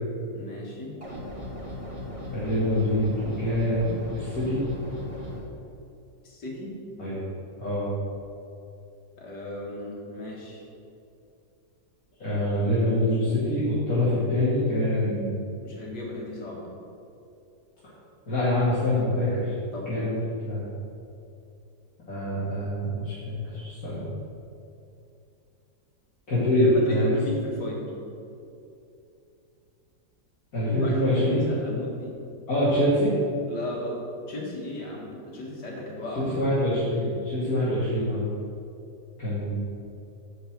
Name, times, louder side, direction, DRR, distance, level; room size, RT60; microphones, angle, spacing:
voice 1, 0.3-0.9 6.2-6.8 9.2-10.7 15.6-16.7 19.7-20.2 26.5-27.9 30.7-32.1 33.5-36.5, left 1 dB, 85° left, -3 dB, 2.6 m, -35 dB
sound 1, 1.0-5.4, left 1 dB, 20° right, 1.6 m, -37 dB
voice 2, 2.3-4.6 7.0-7.2 7.6-7.9 12.2-15.4 18.3-19.5 19.9-20.2 20.4-20.6 22.1-24.0 26.3-27.2 30.5-31.4 32.5-33.1 36.2-38.2 39.2-39.5, left 1 dB, 60° left, -12 dB, 3.0 m, -25 dB
10.0 x 5.0 x 7.6 m, 2.7 s
omnidirectional pair, 1.8 m